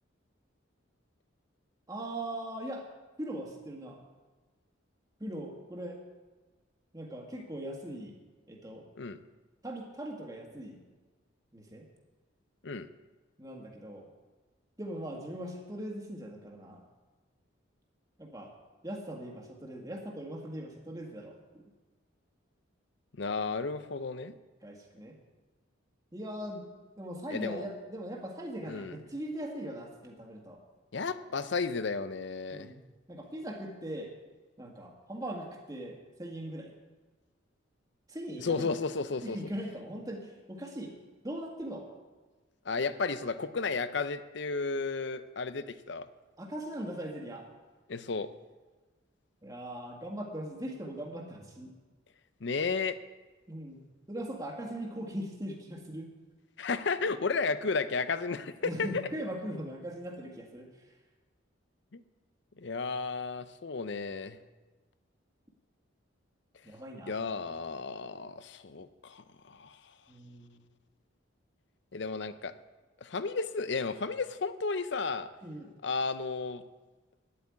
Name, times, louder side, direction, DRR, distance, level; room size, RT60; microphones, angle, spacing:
voice 1, 1.9-2.9 3.2-4.0 5.2-6.0 6.9-8.2 8.5-8.8 9.6-10.8 11.5-11.8 13.4-14.1 14.8-16.8 18.2-18.5 18.8-21.6 24.6-25.2 26.1-26.7 27.0-30.6 32.5-32.8 33.1-34.1 34.6-36.7 38.1-38.7 39.2-40.9 41.2-41.9 46.4-47.5 49.4-51.7 53.5-53.8 54.1-56.1 58.6-60.7 66.6-67.2 70.1-70.6 75.4-75.7, right 1 dB, 15° right, 1 dB, 1.7 m, -40 dB
voice 2, 23.2-24.3 27.3-27.7 28.7-29.0 30.9-32.7 38.4-39.4 42.7-46.1 47.9-48.3 52.4-53.0 56.6-58.9 61.9-62.0 62.6-64.4 67.0-69.8 71.9-72.5 73.0-75.3 75.8-76.6, left 4 dB, 55° left, 13 dB, 0.6 m, -33 dB
9.6 x 8.5 x 9.5 m, 1.3 s
head